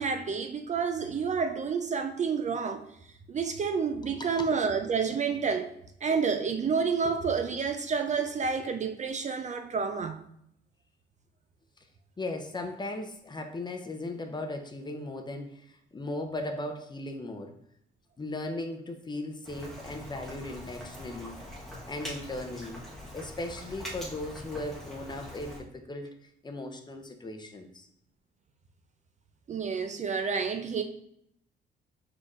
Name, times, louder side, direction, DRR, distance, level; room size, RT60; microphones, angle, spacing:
voice 1, 0.0-2.9 3.3-5.7 6.0-10.2 29.5-30.8, right 5 dB, 35° right, 7 dB, 0.4 m, -29 dB
voice 2, 4.1-4.5 7.0-7.1 12.2-15.7 15.9-17.5 18.2-21.4 21.9-22.8 23.1-27.9, left 2 dB, 20° left, 5 dB, 0.6 m, -37 dB
Rain, 19.4-25.6, equal, ahead, 1.2 m, -43 dB
4.5 x 4.2 x 2.5 m, 0.73 s
cardioid pair, 90°, 20 cm